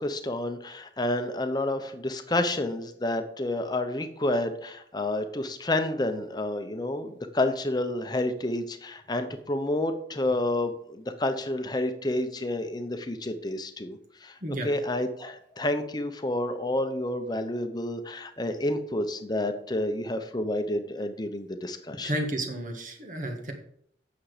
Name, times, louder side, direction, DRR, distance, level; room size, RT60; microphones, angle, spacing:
voice 1, 0.0-22.1, left 1 dB, 25° left, 8 dB, 0.9 m, -29 dB
voice 2, 22.0-23.5, right 1 dB, 50° right, 3 dB, 1.7 m, -32 dB
8.7 x 6.4 x 5.0 m, 0.66 s
head